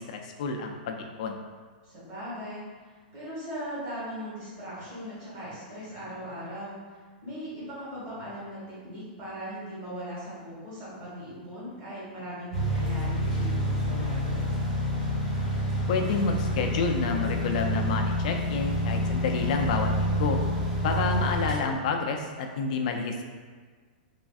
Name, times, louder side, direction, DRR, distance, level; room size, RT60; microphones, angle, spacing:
voice 1, 0.0-1.4 15.9-20.4 20.8-23.2, left 4 dB, 50° left, 3 dB, 0.3 m, -29 dB
voice 2, 1.8-14.4, equal, 30° right, -9 dB, 1.2 m, -39 dB
sound 1, 12.5-21.6, equal, 5° right, 0.7 m, -28 dB
3.4 x 2.4 x 2.3 m, 1.5 s
supercardioid pair, 165°, 5 cm